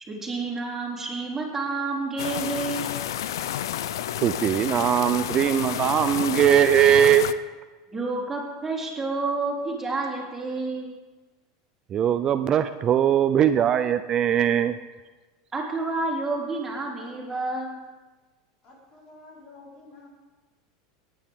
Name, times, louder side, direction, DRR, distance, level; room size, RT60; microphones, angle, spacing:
voice 1, 0.1-2.9 7.9-10.9 15.5-17.8, right 3 dB, 15° right, -3 dB, 3.6 m, -29 dB
sound 1, 2.2-7.3, left 11 dB, 80° left, 0.5 m, -30 dB
voice 2, 4.2-7.3 11.9-14.7, right 9 dB, 35° right, 10 dB, 0.5 m, -20 dB
voice 3, 18.6-20.1, left 3 dB, 40° left, -3 dB, 4.4 m, -49 dB
16.5 x 10.0 x 3.7 m, 1.3 s
hypercardioid pair, 105°, 2 cm